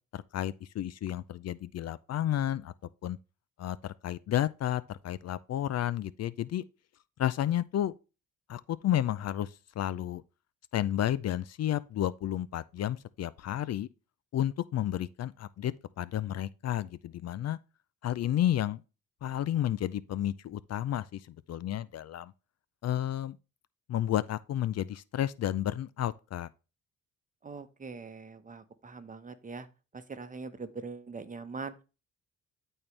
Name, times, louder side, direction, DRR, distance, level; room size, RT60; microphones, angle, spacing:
voice 1, 0.1-2.7 3.0-3.2 3.6-6.6 7.2-7.9 8.5-10.2 10.7-13.9 14.3-17.6 18.0-18.8 19.2-22.3 22.8-23.4 23.9-26.5, left 12 dB, 55° left, 0.5 m, -31 dB
voice 2, 27.4-29.7 29.9-31.7, right 4 dB, 25° right, 1.1 m, -42 dB
12.5 x 4.5 x 3.3 m
cardioid pair, 90°, 30 cm